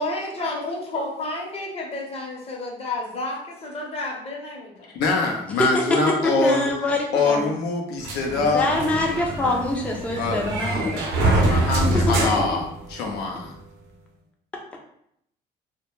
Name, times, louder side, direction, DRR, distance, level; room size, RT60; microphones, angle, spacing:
voice 1, 0.0-4.9, left 2 dB, 35° left, -2 dB, 0.7 m, -31 dB
voice 2, 4.9-6.7 7.1-8.7 10.2-12.6 12.9-13.5, left 3 dB, 85° left, 1 dB, 0.5 m, -24 dB
voice 3, 5.6-7.5 8.3-11.0 12.1-12.4, left 2 dB, 10° left, 0 dB, 0.3 m, -25 dB
sound 1, 8.0-13.3, right 2 dB, 85° right, 0.6 m, -25 dB
2.1 x 2.0 x 2.9 m, 0.73 s
cardioid pair, 110°, 17 cm